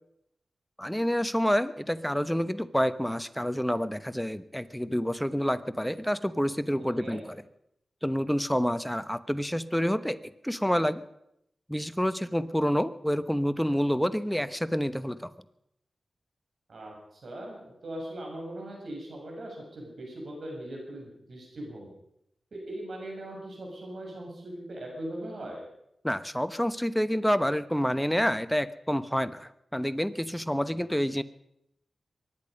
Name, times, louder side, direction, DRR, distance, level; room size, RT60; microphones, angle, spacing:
voice 1, 0.8-7.2 8.0-10.2 10.4-11.0 11.7-15.3 26.0-31.2, equal, 5° left, 12 dB, 1.0 m, -28 dB
voice 2, 6.8-7.2 16.7-21.9 22.5-25.6, right 1 dB, 70° right, 0 dB, 7.1 m, -40 dB
23.5 x 10.5 x 5.3 m, 0.78 s
cardioid pair, 45°, 0 cm